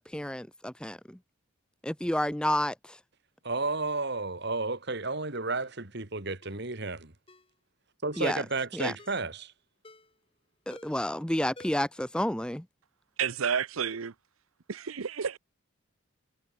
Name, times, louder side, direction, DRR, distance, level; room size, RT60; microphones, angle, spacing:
voice 1, 0.1-1.2 1.8-3.0 8.2-8.4 8.7-8.9 10.7-12.6, left 1 dB, 5° left, 0.6 m, -30 dB
voice 2, 3.4-7.1 8.0-9.5, right 3 dB, 50° right, 2.1 m, -32 dB
Ringtone, 5.6-5.8 6.4-6.6 7.3-7.5 8.1-8.4 9.0-9.3 9.8-10.2 10.7-11.1 11.6-12.0 12.3-12.4, left 2 dB, 25° left, 3.7 m, -53 dB
voice 3, 13.2-14.1 14.7-15.4, right 7 dB, 80° right, 0.7 m, -30 dB
head